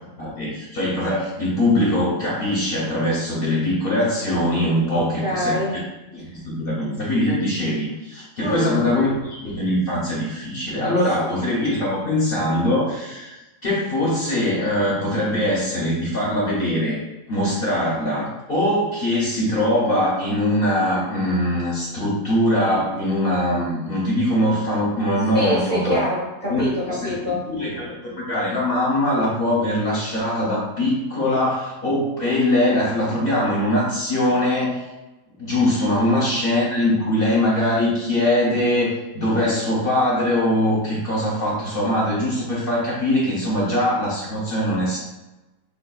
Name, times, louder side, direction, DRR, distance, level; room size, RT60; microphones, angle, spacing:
voice 1, 0.2-5.8 6.1-13.3 13.6-17.0 17.3-26.0 26.5-26.6 26.9-27.1 27.5-34.8 35.4-45.0, left 1 dB, 45° left, -6 dB, 0.9 m, -22 dB
voice 2, 4.9-5.8 8.4-8.9 11.2-11.3 25.3-27.4 35.9-36.1, equal, 10° left, -8 dB, 0.9 m, -26 dB
3.6 x 2.7 x 2.3 m, 1.0 s
omnidirectional pair, 1.5 m